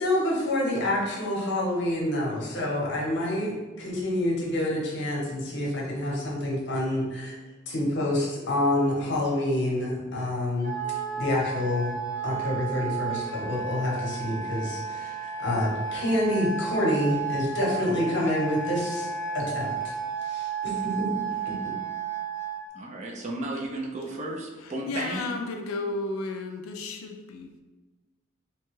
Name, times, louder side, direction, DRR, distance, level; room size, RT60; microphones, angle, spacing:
voice 1, 0.0-3.5 3.8-7.3 7.7-10.8 11.2-12.0 12.2-19.1 19.3-19.9 20.2-21.1, left 1 dB, 55° left, -3 dB, 0.8 m, -27 dB
Wind instrument woodwind instrument, 10.6-22.6, right 6 dB, 15° left, 0.7 m, -33 dB
voice 2, 22.7-25.2, right 2 dB, 35° right, -1 dB, 0.4 m, -34 dB
voice 3, 24.6-27.6, left 3 dB, 90° left, 5 dB, 0.3 m, -33 dB
2.9 x 2.2 x 3.0 m, 1.2 s
head